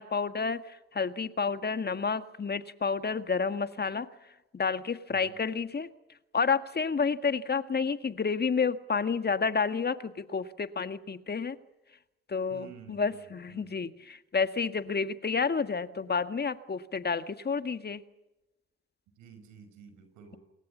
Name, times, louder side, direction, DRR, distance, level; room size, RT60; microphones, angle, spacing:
voice 1, 0.0-4.1 4.5-5.9 6.3-11.6 12.3-18.0, left 5 dB, 35° left, 11 dB, 1.7 m, -30 dB
voice 2, 12.5-13.8 19.2-20.4, right 6 dB, 75° right, 9 dB, 5.7 m, -51 dB
27.5 x 23.0 x 7.3 m, 1.0 s
hypercardioid pair, 55°, 30 cm